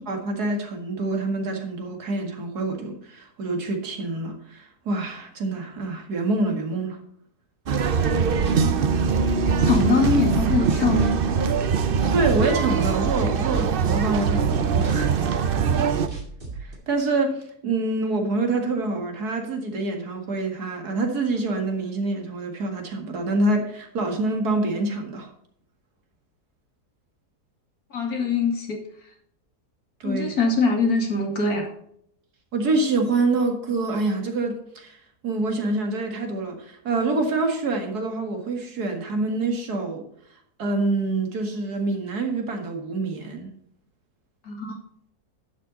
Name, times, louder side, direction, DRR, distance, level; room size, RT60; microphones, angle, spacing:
voice 1, 0.1-7.0 12.1-15.1 16.6-25.3 30.0-30.3 32.5-35.0 35.2-40.1 40.6-43.5, right 2 dB, 75° right, 3 dB, 2.5 m, -26 dB
sound 1, 7.7-16.1, right 6 dB, 50° right, 0.6 m, -22 dB
sound 2, 8.0-9.4 9.7-12.0 12.3-12.6 12.9-16.8, right 3 dB, 35° right, 2.4 m, -37 dB
voice 2, 9.7-11.1 15.7-15.9 27.9-28.8 30.0-31.6 44.5-44.8, left 4 dB, 65° left, 2 dB, 2.7 m, -23 dB
11.0 x 7.7 x 4.1 m, 0.68 s
omnidirectional pair, 1.7 m